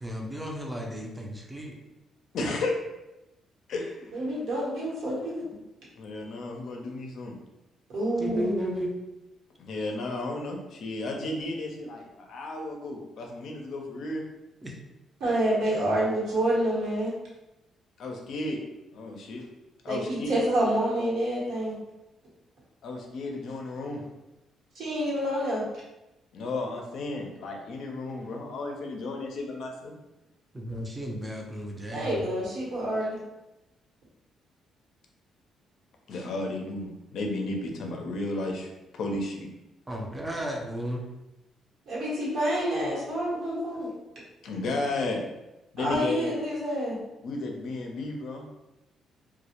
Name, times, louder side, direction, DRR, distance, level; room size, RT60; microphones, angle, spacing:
voice 1, 0.0-1.7 8.2-8.9 14.6-14.7 30.5-32.2 39.9-41.0, equal, 15° right, 0 dB, 0.5 m, -34 dB
voice 2, 2.3-2.8 3.7-4.2 6.0-7.4 9.6-14.2 18.0-18.6 18.9-19.4 19.8-20.4 22.8-24.0 26.3-29.9 36.1-39.5 44.4-45.2 45.7-46.3 47.2-48.5, left 2 dB, 70° left, 1 dB, 0.5 m, -33 dB
voice 3, 4.1-5.4 7.9-8.8 15.2-17.1 19.8-21.8 24.7-25.6 31.9-33.2 41.9-43.9 45.8-47.0, right 1 dB, 70° right, -6 dB, 1.0 m, -28 dB
2.1 x 2.0 x 2.8 m, 0.97 s
cardioid pair, 90°, 0 cm